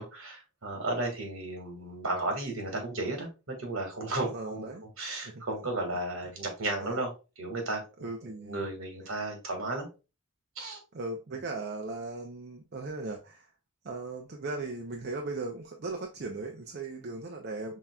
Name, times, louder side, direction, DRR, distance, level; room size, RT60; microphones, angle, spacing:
voice 1, 0.0-4.7 5.0-9.9 10.6-10.8, right 2 dB, 75° right, 1.6 m, -34 dB
voice 2, 4.2-4.8 5.3-5.4 6.8-7.0 8.0-8.6 10.9-13.5 13.8-17.8, right 3 dB, 50° right, 0.5 m, -38 dB
5.7 x 3.6 x 2.2 m
head